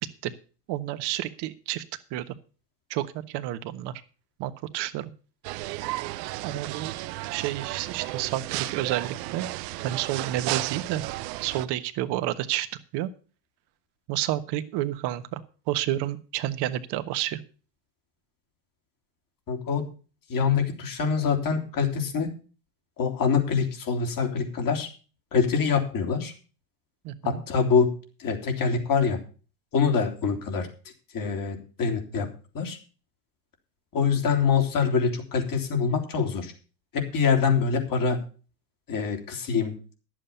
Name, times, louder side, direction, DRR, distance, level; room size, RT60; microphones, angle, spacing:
voice 1, 0.7-1.8 2.1-2.3 2.9-4.0 4.4-5.1 6.4-6.9 7.3-9.5 9.8-11.0 11.4-12.7 12.9-13.1 14.1-15.4 15.7-17.4 27.0-27.4, right 14 dB, 55° right, 10 dB, 1.3 m, -30 dB
MC Donalds quiet restaurant, 5.4-11.7, right 18 dB, 75° right, 0.9 m, -33 dB
voice 2, 19.5-19.8 20.3-22.3 23.0-24.9 25.3-26.3 27.2-27.9 28.2-29.2 29.7-30.7 31.1-32.3 32.5-32.8 33.9-36.5 36.9-38.2 38.9-39.7, left 6 dB, 40° left, 5 dB, 3.3 m, -25 dB
11.0 x 7.6 x 6.8 m, 0.37 s
supercardioid pair, 105°, 50 cm